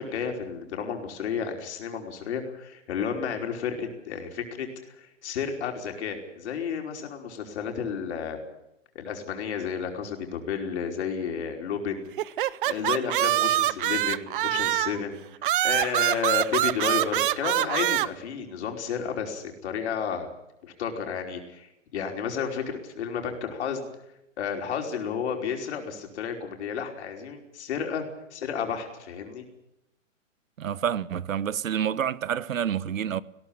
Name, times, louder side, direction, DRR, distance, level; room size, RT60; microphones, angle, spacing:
voice 1, 0.0-8.4 8.9-12.1 12.6-15.2 15.6-20.3 20.6-23.8 24.4-28.0 28.3-29.4, left 7 dB, 55° left, 5.0 m, -32 dB
sound 1, 12.2-15.0 15.4-18.1, right 14 dB, 40° right, 0.8 m, -24 dB
voice 2, 30.6-33.2, right 9 dB, 85° right, 1.1 m, -28 dB
20.0 x 17.0 x 8.9 m
hypercardioid pair, 150°, 39 cm